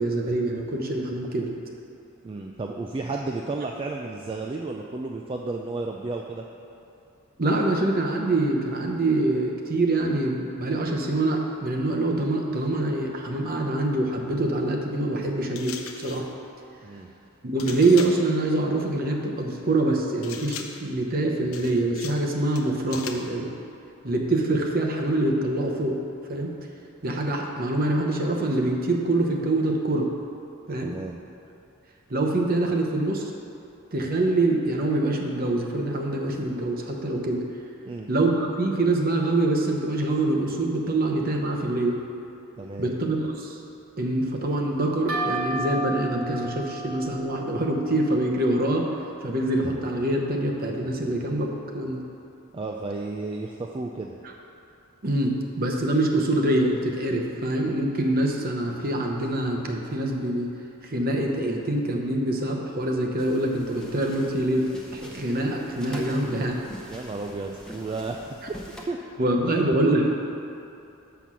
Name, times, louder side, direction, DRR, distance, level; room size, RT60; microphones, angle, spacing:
voice 1, 0.0-1.5 7.4-16.2 17.4-23.6 24.0-26.0 26.3-26.5 27.0-30.1 30.7-30.9 32.1-33.2 33.9-37.4 38.1-42.0 42.8-43.6 44.0-48.9 49.2-52.0 55.0-60.5 60.8-66.6 69.2-70.1, right 2 dB, 45° right, 1 dB, 0.9 m, -25 dB
voice 2, 2.2-6.4 16.8-17.1 30.8-31.2 37.9-38.1 42.6-42.9 52.5-54.2 66.9-68.6 68.9-69.0, right 3 dB, 25° right, 1 dB, 0.3 m, -33 dB
sound 1, 15.5-16.3 17.6-18.3 20.2-20.9 21.5-22.3 22.5-23.3, left 7 dB, 75° left, 0.6 m, -39 dB
sound 2, 45.1-48.6, right 2 dB, 70° right, 1.7 m, -33 dB
sound 3, 63.2-68.8, left 1 dB, 5° left, 0.8 m, -44 dB
7.0 x 5.8 x 6.1 m, 2.7 s
head